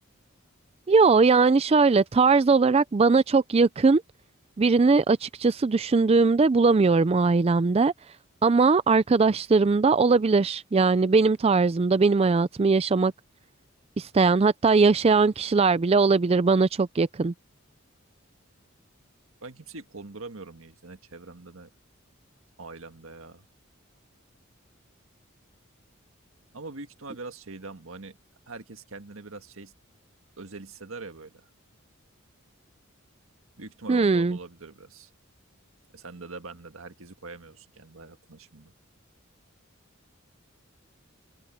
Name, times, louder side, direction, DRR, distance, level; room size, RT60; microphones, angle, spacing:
voice 1, 0.9-4.0 4.6-7.9 8.4-13.1 14.0-17.3 33.9-34.4, right 4 dB, 30° right, 0.4 m, -20 dB
voice 2, 19.4-21.7 22.6-23.5 26.5-28.2 28.5-29.7 30.4-31.5 33.6-35.1 35.9-38.7, right 3 dB, 85° right, 1.8 m, -42 dB
head